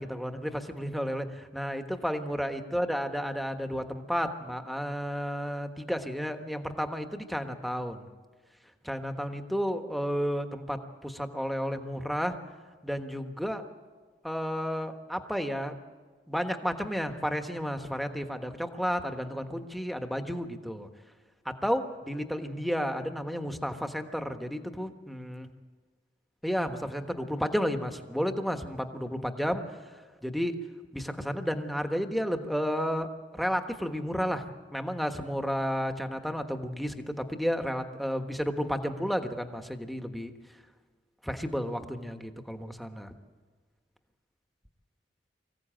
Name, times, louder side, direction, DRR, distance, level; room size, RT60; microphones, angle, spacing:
voice 1, 0.0-8.1 8.8-12.4 12.8-13.6 14.2-15.8 16.3-20.9 21.4-25.5 26.4-29.6 30.2-30.7 30.9-33.1 33.3-34.4 34.7-40.3 41.2-43.1, equal, ahead, 6 dB, 1.3 m, -32 dB
24.5 x 15.5 x 8.9 m, 1.4 s
head